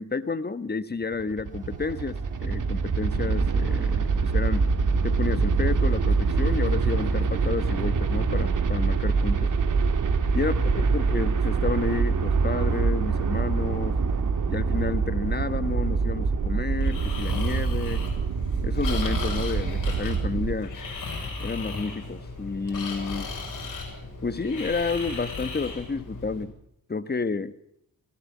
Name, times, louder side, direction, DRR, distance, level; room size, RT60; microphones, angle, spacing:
voice 1, 0.0-2.2 2.4-4.7 5.0-9.5 10.3-14.0 14.5-18.0 18.6-20.7 21.4-23.3 24.2-26.5 26.9-27.5, left 4 dB, 25° left, 12 dB, 1.4 m, -30 dB
sound 1, 1.1-20.5, right 4 dB, 55° right, 2.8 m, -25 dB
sound 2, 1.5-15.7, right 2 dB, 20° right, 7.0 m, -42 dB
Breathing, 16.7-26.4, left 3 dB, 60° left, 7.1 m, -35 dB
19.0 x 16.5 x 8.6 m, 0.75 s
cardioid pair, 75°, 36 cm